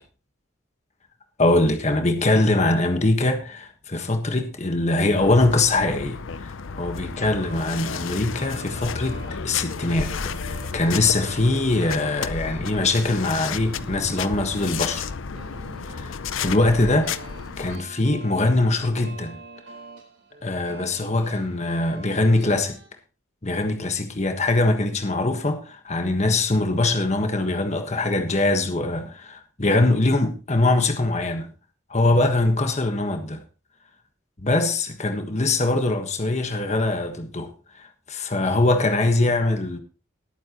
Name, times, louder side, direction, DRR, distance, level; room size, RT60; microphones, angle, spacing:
voice 1, 1.4-15.1 15.9-17.1 17.6-19.4 20.4-22.8 23.4-31.5 31.9-33.4 34.4-39.8, left 2 dB, 35° left, 1.4 m, -22 dB
sound 1, 5.2-17.8, left 5 dB, 75° left, 0.6 m, -32 dB
sound 2, 7.4-22.9, right 3 dB, 80° right, 4.5 m, -45 dB
20.0 x 8.9 x 3.0 m
head